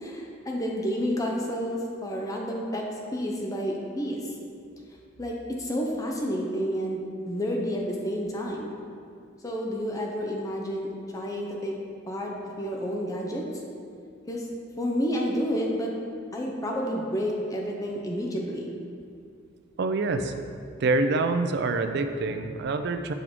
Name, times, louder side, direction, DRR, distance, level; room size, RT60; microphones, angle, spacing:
voice 1, 0.0-4.4 5.2-8.7 9.4-11.8 12.1-13.5 14.3-14.5 14.8-15.9 16.3-18.7, equal, 15° left, 0 dB, 0.5 m, -30 dB
voice 2, 19.8-20.3 20.8-23.1, right 3 dB, 55° right, 8 dB, 0.4 m, -26 dB
7.0 x 4.6 x 3.6 m, 2.3 s
head